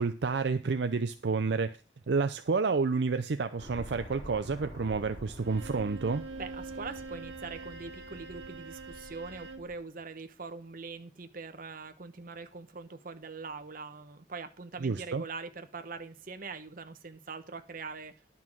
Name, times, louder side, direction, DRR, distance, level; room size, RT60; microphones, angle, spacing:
voice 1, 0.0-1.8 2.1-6.2 14.8-15.2, right 4 dB, 70° right, 0.5 m, -29 dB
sound 1, 3.6-9.8, equal, 50° left, 5.2 m, -48 dB
Bowed string instrument, 5.4-9.7, right 3 dB, 85° right, 1.4 m, -44 dB
voice 2, 6.3-18.1, right 4 dB, 50° right, 1.0 m, -43 dB
11.0 x 5.6 x 6.1 m
head